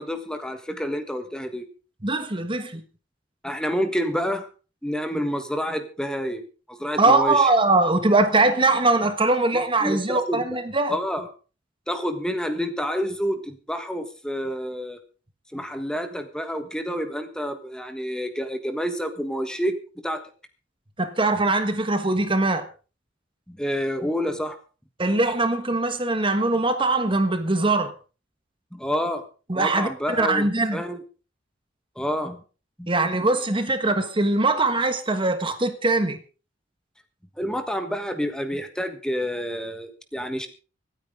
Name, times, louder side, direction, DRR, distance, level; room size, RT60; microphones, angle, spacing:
voice 1, 0.0-1.6 3.4-4.5 4.8-6.4 6.7-7.5 9.5-10.4 10.9-11.3 11.9-15.0 15.5-19.8 20.0-20.2 23.5-24.6 28.7-29.2 29.5-31.0 31.9-32.4 32.8-32.9 37.4-40.5, equal, 5° left, 1.5 m, -28 dB
voice 2, 2.0-2.8 7.0-10.9 21.0-22.7 25.0-27.9 29.5-29.9 30.2-30.8 32.9-36.2, right 2 dB, 25° right, 1.4 m, -21 dB
25.0 x 9.5 x 3.7 m
head